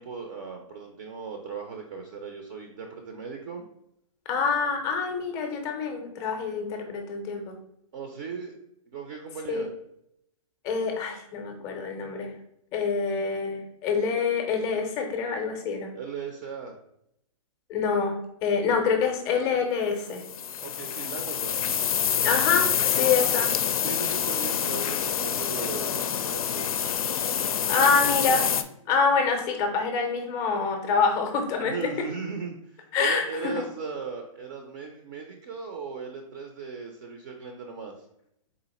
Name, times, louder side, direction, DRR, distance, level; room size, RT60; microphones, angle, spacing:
voice 1, 0.0-3.6 7.9-8.5 8.9-9.7 16.0-16.7 20.6-21.6 23.8-26.9 31.6-38.1, right 5 dB, 35° right, 3 dB, 0.5 m, -37 dB
voice 2, 4.3-7.6 9.5-9.7 10.6-12.3 12.7-15.9 17.7-20.2 22.2-23.5 27.7-28.5 28.9-32.1 32.9-33.5, left 5 dB, 20° left, 4 dB, 0.5 m, -26 dB
sound 1, 20.1-28.6, left 9 dB, 80° left, 0.4 m, -26 dB
3.9 x 2.5 x 4.0 m, 0.76 s
hypercardioid pair, 160°, 18 cm